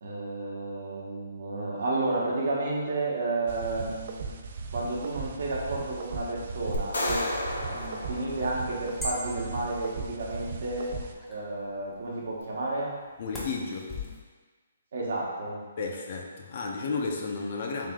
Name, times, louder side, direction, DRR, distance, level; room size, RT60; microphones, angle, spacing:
voice 1, 0.0-4.1 4.7-7.3 7.8-11.0 11.3-12.9 14.9-15.6 16.6-16.7, right 2 dB, 65° right, -4 dB, 1.0 m, -31 dB
sound 1, 3.5-11.1, right 4 dB, 50° right, 0.3 m, -38 dB
sound 2, 6.7-9.1, left 1 dB, 85° left, 0.7 m, -33 dB
sound 3, 7.7-14.2, left 2 dB, 5° left, 0.6 m, -43 dB
voice 2, 13.2-13.9 15.8-17.9, left 4 dB, 50° left, 1 dB, 0.5 m, -32 dB
3.5 x 2.7 x 3.6 m, 1.4 s
hypercardioid pair, 155°, 0 cm